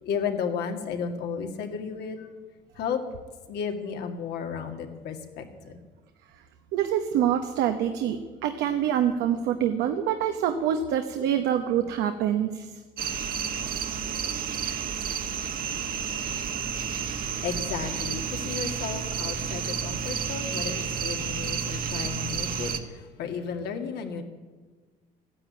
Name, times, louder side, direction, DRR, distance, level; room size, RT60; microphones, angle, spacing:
voice 1, 0.0-2.3 2.8-3.0 3.5-5.8 17.1-24.2, left 6 dB, 80° left, 4 dB, 2.1 m, -33 dB
voice 2, 6.7-12.8, right 9 dB, 90° right, 7 dB, 1.0 m, -26 dB
sound 1, 13.0-22.8, right 7 dB, 60° right, 1.5 m, -31 dB
14.0 x 9.8 x 9.3 m, 1.4 s
cardioid pair, 110°, 17 cm